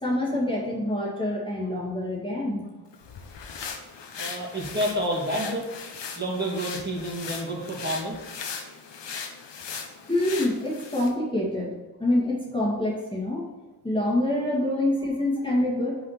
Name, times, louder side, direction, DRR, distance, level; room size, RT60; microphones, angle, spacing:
voice 1, 0.0-2.7 10.1-13.5 13.8-16.1, left 1 dB, 10° left, -5 dB, 2.0 m, -26 dB
sound 1, 2.9-11.2, left 6 dB, 80° left, 1.1 m, -38 dB
voice 2, 4.2-5.6 6.2-8.2 15.0-15.1, right 1 dB, 25° right, -4 dB, 2.7 m, -29 dB
5.8 x 5.1 x 6.6 m, 1.1 s
cardioid pair, 65°, 42 cm